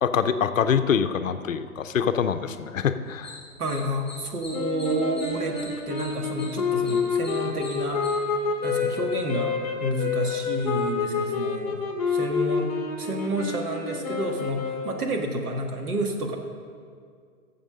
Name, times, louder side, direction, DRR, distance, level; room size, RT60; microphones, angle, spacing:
voice 1, 0.0-3.4, left 7 dB, 60° left, 10 dB, 0.6 m, -25 dB
sound 1, 3.1-8.1, left 1 dB, 5° right, 1.7 m, -44 dB
voice 2, 3.6-8.4 8.6-9.5 9.8-11.8 12.1-12.7 13.0-16.4, right 1 dB, 75° right, 3 dB, 1.7 m, -29 dB
sound 2, 4.5-15.3, left 5 dB, 25° left, 0.9 m, -28 dB
9.0 x 7.0 x 6.6 m, 2.1 s
hypercardioid pair, 180°, 45 cm